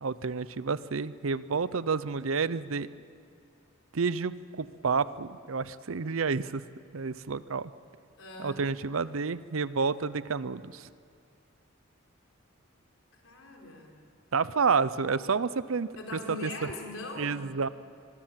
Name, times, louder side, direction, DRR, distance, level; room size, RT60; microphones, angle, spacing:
voice 1, 0.0-2.9 3.9-6.6 6.9-7.7 8.4-10.9 14.3-16.5 17.2-17.7, right 5 dB, 85° right, 16 dB, 0.7 m, -30 dB
voice 2, 8.2-8.6 13.1-14.0 16.0-17.4, left 2 dB, 85° left, 1 dB, 4.2 m, -41 dB
27.0 x 22.0 x 7.5 m, 2.4 s
head